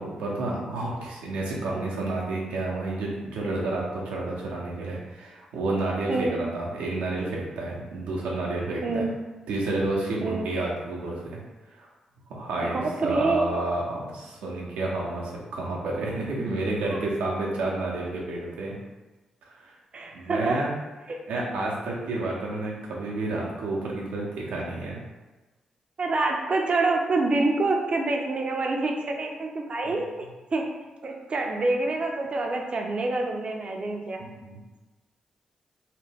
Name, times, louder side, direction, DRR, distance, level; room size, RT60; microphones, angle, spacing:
voice 1, 0.0-9.1 9.5-11.4 11.7-11.9 12.3-18.7 19.4-19.8 20.1-20.7 21.3-25.0 29.8-30.0 34.2-34.6, right 2 dB, 85° right, -3 dB, 0.7 m, -30 dB
voice 2, 6.1-6.5 8.8-9.1 10.2-10.5 12.6-13.4 16.9-17.0 19.9-20.7 21.1-21.2 26.0-30.8 31.0-34.2, right 2 dB, 50° right, 2 dB, 0.5 m, -27 dB
2.9 x 2.2 x 3.4 m, 1.1 s
supercardioid pair, 50°, 2 cm